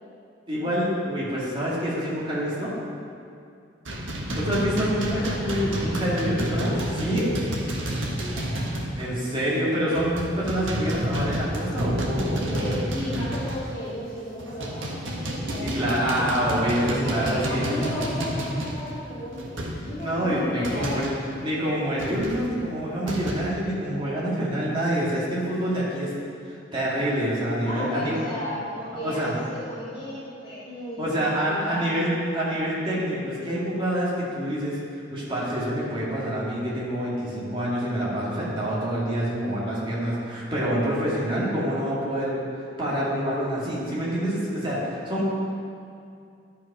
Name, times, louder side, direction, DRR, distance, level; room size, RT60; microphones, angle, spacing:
voice 1, 0.5-2.7 4.4-7.3 9.0-12.8 15.6-17.8 20.0-21.1 21.4-26.1 26.4-28.3 29.0-29.3 31.0-34.8 35.1-42.3 42.8-45.3, equal, 25° right, -7 dB, 2.2 m, -26 dB
sound 1, 3.9-9.1 9.4-9.5 9.9-13.9 14.4-21.2 22.0-23.3, equal, 80° right, 1.4 m, -30 dB
voice 2, 5.7-7.1 8.1-8.9 12.5-16.3 16.8-21.1 27.6-32.0, left 1 dB, 25° left, -11 dB, 2.5 m, -35 dB
11.0 x 5.7 x 4.9 m, 2.4 s
head